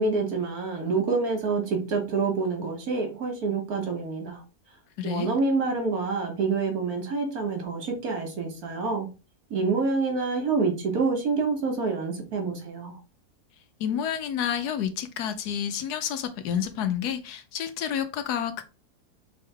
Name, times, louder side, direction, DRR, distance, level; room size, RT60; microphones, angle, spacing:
voice 1, 0.0-4.4 5.0-9.1 9.5-13.0, right 4 dB, 65° right, 1.7 m, -27 dB
voice 2, 5.0-5.3 13.8-18.6, left 9 dB, 80° left, 1.2 m, -29 dB
4.5 x 3.5 x 3.3 m
omnidirectional pair, 1.7 m